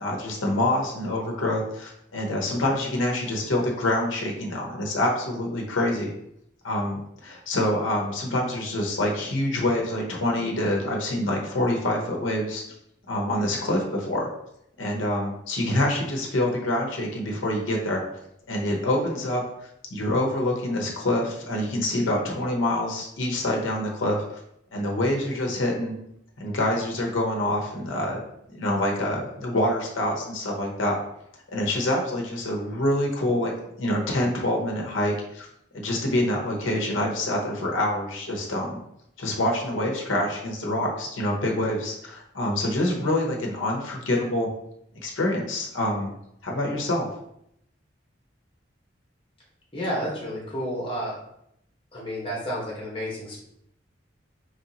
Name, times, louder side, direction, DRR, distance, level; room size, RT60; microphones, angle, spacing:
voice 1, 0.0-6.1 6.6-12.6 13.1-14.3 14.8-18.0 18.5-19.4 19.9-24.2 24.7-26.0 26.4-28.2 28.5-31.0 31.5-33.5 33.8-35.5 35.7-38.8 39.2-44.5 45.0-46.1 46.4-47.1, left 1 dB, 90° left, 0 dB, 0.8 m, -26 dB
voice 2, 49.7-51.1 51.9-53.4, equal, 25° left, -4 dB, 1.2 m, -31 dB
4.0 x 3.1 x 2.8 m, 0.75 s
head